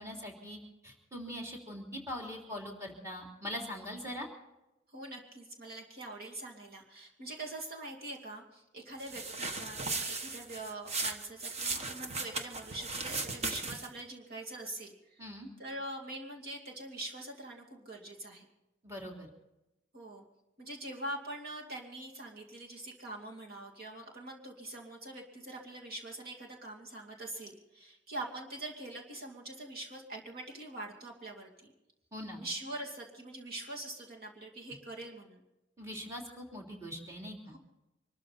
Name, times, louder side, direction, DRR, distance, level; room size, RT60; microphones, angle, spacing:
voice 1, 0.0-4.3 15.2-15.5 18.8-19.3 32.1-32.4 35.8-37.6, equal, 15° right, 0 dB, 3.2 m, -42 dB
voice 2, 4.9-15.2 15.6-18.5 19.9-20.2 20.6-31.7 32.4-35.4 37.5-37.6, right 1 dB, 55° right, -1 dB, 2.6 m, -44 dB
sound 1, 9.0-14.0, right 3 dB, 35° right, 1.2 m, -37 dB
24.5 x 13.5 x 4.2 m, 0.93 s
head